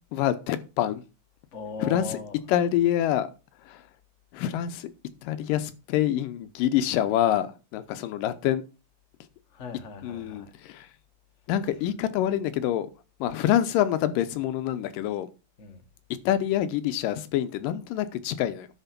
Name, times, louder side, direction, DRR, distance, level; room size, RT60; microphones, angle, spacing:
voice 1, 0.1-1.0 1.8-2.2 2.5-3.3 3.6-3.8 4.3-4.9 5.2-8.6 10.0-10.9 11.5-12.9 13.2-15.3 16.1-18.7, left 11 dB, 85° left, 2.5 m, -26 dB
voice 2, 1.5-2.5 9.5-10.5 11.7-11.8 15.6-15.8, left 4 dB, 70° left, 0.7 m, -39 dB
11.0 x 4.5 x 5.9 m
omnidirectional pair, 3.8 m